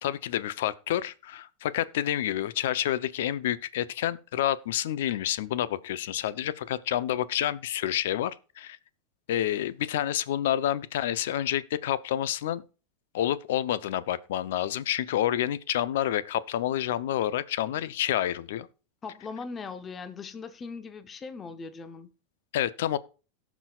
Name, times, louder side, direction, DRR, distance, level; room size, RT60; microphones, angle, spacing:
voice 1, 0.0-8.8 9.3-12.6 13.1-18.7 22.5-23.0, left 12 dB, 75° left, 0.6 m, -28 dB
voice 2, 19.0-22.1, left 4 dB, 25° left, 0.8 m, -39 dB
18.0 x 6.0 x 2.4 m
hypercardioid pair, 115°, 0 cm